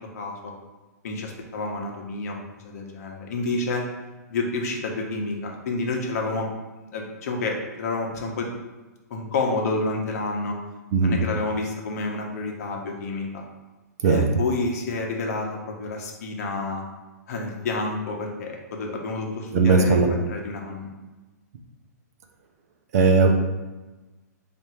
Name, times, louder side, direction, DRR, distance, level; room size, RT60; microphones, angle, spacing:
voice 1, 0.1-0.5 1.0-2.3 2.6-3.8 4.3-6.5 6.9-8.5 9.1-10.6 11.0-13.4 14.0-16.8 17.3-20.9, left 3 dB, 60° left, 1 dB, 0.9 m, -29 dB
voice 2, 19.5-20.1 22.9-23.4, right 4 dB, 60° right, 4 dB, 0.6 m, -18 dB
3.5 x 2.6 x 4.4 m, 1.2 s
hypercardioid pair, 140°, 9 cm